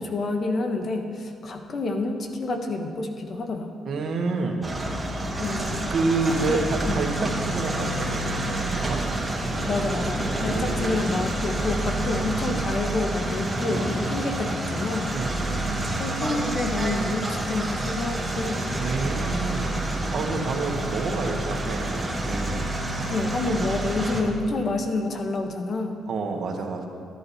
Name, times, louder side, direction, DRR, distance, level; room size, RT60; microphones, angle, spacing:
voice 1, 0.0-3.7 5.4-5.9 6.3-7.0 9.7-15.1 16.0-18.7 20.3-20.5 23.1-25.9, left 2 dB, 50° left, 5 dB, 1.2 m, -28 dB
voice 2, 3.8-4.7 5.9-9.0 10.5-11.2 12.0-12.2 15.1-16.0 18.8-19.8 20.1-22.6 26.1-26.9, right 3 dB, 60° right, 2 dB, 1.5 m, -29 dB
sound 1, 4.6-24.2, right 1 dB, 15° right, 1.7 m, -28 dB
13.0 x 11.0 x 4.3 m, 2.3 s
cardioid pair, 90°, 0 cm